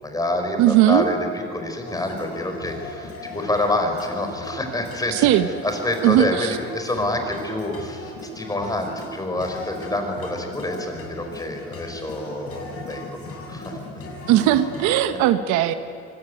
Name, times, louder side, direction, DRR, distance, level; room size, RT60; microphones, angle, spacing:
voice 1, 0.0-5.3 5.6-13.2 13.5-14.1, left 1 dB, 10° left, 4 dB, 4.7 m, -27 dB
voice 2, 0.6-1.1 5.1-5.5 6.0-6.6 14.3-15.7, right 13 dB, 75° right, 10 dB, 1.3 m, -18 dB
sound 1, 1.9-14.9, left 1 dB, 50° left, 7.2 m, -37 dB
24.5 x 19.0 x 9.4 m, 2.6 s
cardioid pair, 105°, 29 cm